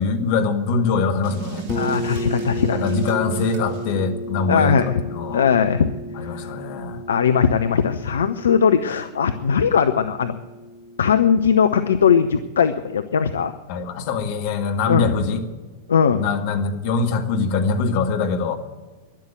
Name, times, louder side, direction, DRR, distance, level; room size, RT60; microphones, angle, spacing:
voice 1, 0.0-1.7 2.7-5.5 6.2-7.0 13.7-15.4 16.1-18.6, left 4 dB, 50° left, 5 dB, 1.9 m, -23 dB
sound 1, 1.2-3.9, right 5 dB, 40° right, 2.8 m, -35 dB
voice 2, 1.7-2.8 4.5-5.0 5.3-5.9 6.2-6.5 7.1-10.3 11.0-13.5 14.9-15.1 15.9-16.2, left 7 dB, 65° left, 9 dB, 0.6 m, -19 dB
sound 2, 1.7-11.4, left 1 dB, 25° left, 1.8 m, -33 dB
12.0 x 11.5 x 9.2 m, 1.2 s
figure-of-eight pair, 90°, 0 cm